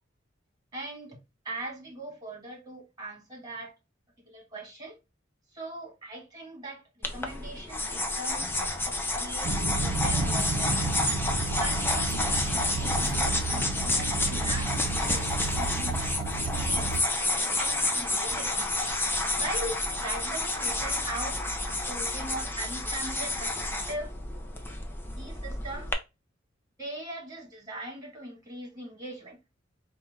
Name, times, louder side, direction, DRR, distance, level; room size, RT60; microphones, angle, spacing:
voice 1, 0.7-1.2 1.5-3.7 4.2-5.0 5.5-8.5 8.8-10.9 11.6-16.2 16.5-17.0 17.4-18.6 19.4-24.1 25.1-25.9 26.8-29.4, right 1 dB, 20° right, 1.8 m, -40 dB
sound 1, 7.0-25.9, left 2 dB, 10° left, 0.6 m, -30 dB
sound 2, 9.4-17.0, right 3 dB, 55° right, 0.6 m, -31 dB
4.3 x 2.3 x 3.7 m
head